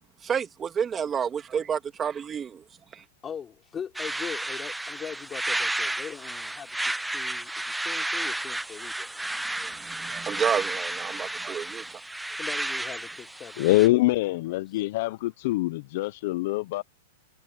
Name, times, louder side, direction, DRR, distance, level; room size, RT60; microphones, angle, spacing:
voice 1, 0.2-2.6 2.9-3.0 9.5-11.8, right 7 dB, 20° right, 2.7 m, -30 dB
voice 2, 3.2-9.3 12.4-14.0 14.5-14.6 15.0-15.1, left 7 dB, 20° left, 5.2 m, -41 dB
sound 1, 4.0-13.9, right 1 dB, 5° right, 0.5 m, -32 dB
voice 3, 13.6-16.8, left 18 dB, 60° left, 0.9 m, -24 dB
hypercardioid pair, 120°, 0 cm